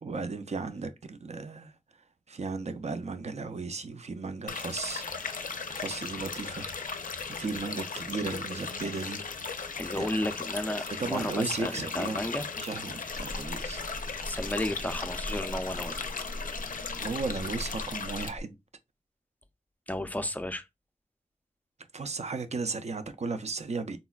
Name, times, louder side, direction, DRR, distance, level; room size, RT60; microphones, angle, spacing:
voice 1, 0.0-1.7 2.3-5.4 5.7-6.6 7.3-9.2 10.0-10.1 10.9-12.2 12.6-13.8 16.9-18.5 21.9-24.0, right 4 dB, 55° right, 0.4 m, -35 dB
sound 1, 4.5-18.3, left 5 dB, 90° left, 0.4 m, -37 dB
voice 2, 9.8-12.4 13.0-13.1 14.2-16.2 19.9-20.7, left 1 dB, 10° left, 0.4 m, -33 dB
sound 2, 13.1-18.4, equal, 70° right, 0.8 m, -41 dB
3.9 x 2.1 x 2.3 m
wide cardioid pair, 60°, 13 cm